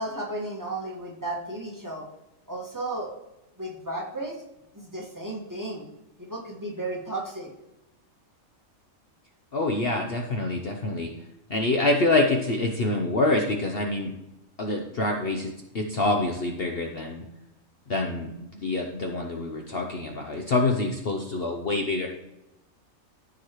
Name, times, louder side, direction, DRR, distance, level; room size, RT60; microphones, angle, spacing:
voice 1, 0.0-2.1 2.5-3.1 3.6-4.4 4.7-5.8 6.2-7.5, right 2 dB, 15° right, -3 dB, 1.8 m, -34 dB
voice 2, 9.5-11.1 11.5-14.1 14.6-17.2 17.9-22.1, left 2 dB, 50° left, 3 dB, 1.0 m, -26 dB
14.0 x 4.9 x 3.1 m, 0.92 s
omnidirectional pair, 1.4 m